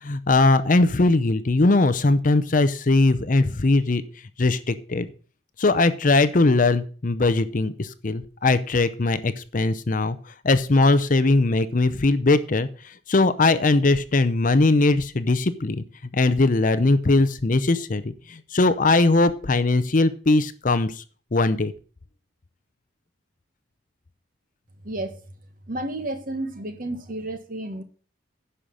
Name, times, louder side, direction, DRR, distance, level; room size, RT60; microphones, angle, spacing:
voice 1, 0.0-4.0 4.4-5.1 5.6-10.2 10.4-12.7 13.1-15.8 16.1-21.0 21.3-21.7, left 2 dB, 45° left, 0.6 m, -20 dB
voice 2, 24.8-25.2 25.7-27.8, right 1 dB, 45° right, 1.4 m, -31 dB
10.5 x 5.7 x 6.4 m
head